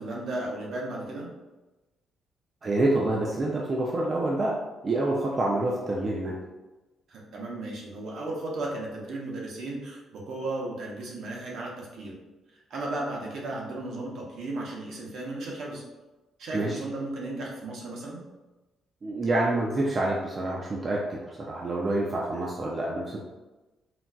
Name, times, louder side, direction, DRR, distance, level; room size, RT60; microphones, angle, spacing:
voice 1, 0.0-1.3 7.1-12.2 12.7-15.8 16.4-18.2, right 2 dB, 60° right, -2 dB, 0.6 m, -35 dB
voice 2, 2.6-4.6 4.8-6.4 16.5-16.8 19.0-23.2, right 2 dB, 30° right, -3 dB, 0.3 m, -27 dB
3.9 x 2.2 x 2.2 m, 1.1 s
cardioid pair, 170°, 0 cm